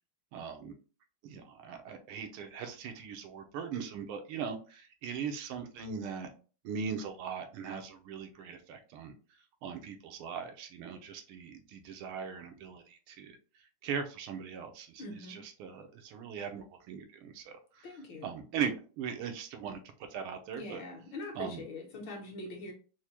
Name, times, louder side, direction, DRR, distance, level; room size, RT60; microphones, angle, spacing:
voice 1, 0.3-0.7 1.2-6.3 6.6-9.1 9.6-13.4 13.8-15.0 15.3-17.9 18.2-19.8 20.1-20.8 21.4-21.6, right 6 dB, 85° right, 6 dB, 1.5 m, -39 dB
voice 2, 15.0-15.4 17.8-18.3 20.6-22.7, left 2 dB, 65° left, 1 dB, 1.6 m, -43 dB
4.6 x 2.1 x 2.8 m, 0.37 s
omnidirectional pair, 2.3 m